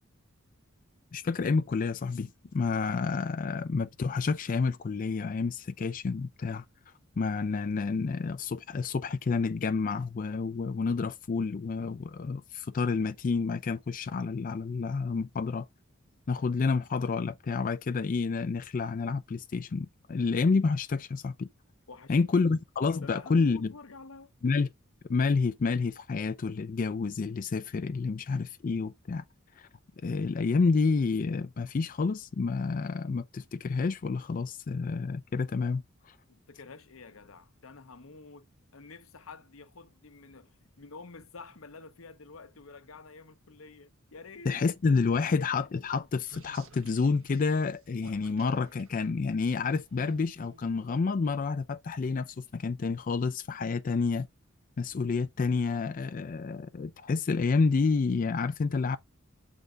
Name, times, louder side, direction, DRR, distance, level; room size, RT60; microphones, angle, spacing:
voice 1, 1.1-6.6 7.2-15.7 16.3-21.5 22.1-23.7 24.4-24.7 25.1-29.2 29.6-29.7 30.0-36.2 44.5-54.3 54.8-59.0, left 4 dB, 40° left, 0.4 m, -29 dB
voice 2, 21.9-22.6 23.0-24.3 36.3-44.6 45.1-45.5, left 4 dB, 75° left, 0.8 m, -49 dB
sound 1, 45.3-51.6, right 3 dB, 75° right, 1.4 m, -56 dB
7.8 x 3.5 x 3.8 m
head